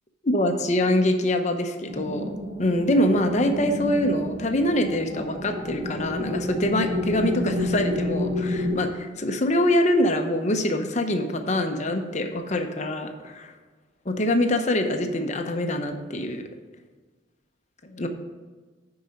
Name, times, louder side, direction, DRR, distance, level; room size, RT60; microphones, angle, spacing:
voice 1, 0.2-2.3 2.6-13.5 14.1-16.4 17.8-18.1, left 1 dB, 40° left, 6 dB, 0.8 m, -24 dB
sound 1, 1.9-8.8, left 1 dB, 25° right, 1.0 m, -30 dB
9.9 x 4.8 x 5.3 m, 1.3 s
head